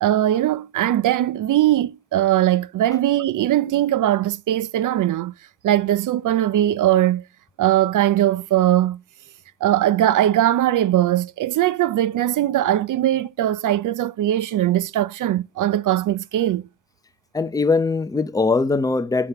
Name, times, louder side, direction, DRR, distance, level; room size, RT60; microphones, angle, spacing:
voice 1, 0.0-5.3 5.6-7.2 7.6-9.0 9.6-16.6, right 13 dB, 55° right, 0.5 m, -20 dB
voice 2, 17.3-19.3, left 4 dB, 10° left, 0.5 m, -21 dB
5.5 x 3.7 x 5.5 m
supercardioid pair, 65°, 38 cm